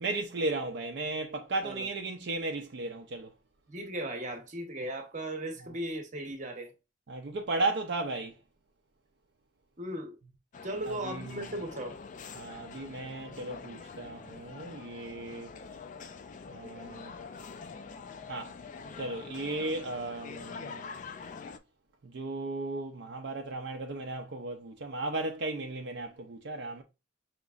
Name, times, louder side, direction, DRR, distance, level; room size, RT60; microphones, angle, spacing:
voice 1, 0.0-3.3 7.1-8.3 10.9-11.3 12.3-15.5 16.5-17.1 18.3-18.5 19.0-20.8 22.0-26.8, right 2 dB, 60° right, 0.5 m, -35 dB
voice 2, 3.7-6.7 9.8-10.2 10.6-12.0, right 1 dB, 40° right, 0.8 m, -37 dB
sound 1, 10.5-21.6, left 5 dB, 40° left, 0.4 m, -45 dB
5.1 x 2.9 x 2.4 m
head